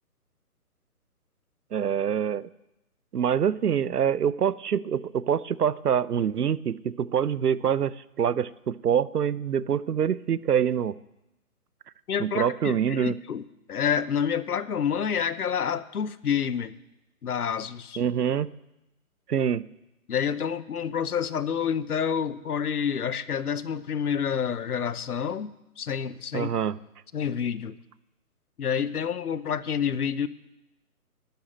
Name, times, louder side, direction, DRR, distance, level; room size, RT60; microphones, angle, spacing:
voice 1, 1.7-2.5 3.1-10.9 12.2-13.2 18.0-18.5 19.3-19.7 26.3-26.7, right 8 dB, 85° right, 19 dB, 0.7 m, -25 dB
voice 2, 12.1-13.4 13.7-16.7 17.2-18.0 20.1-26.5 27.1-27.8 28.6-30.3, left 7 dB, 75° left, 16 dB, 0.9 m, -28 dB
11.0 x 7.4 x 9.2 m, 0.90 s
hypercardioid pair, 150°, 45 cm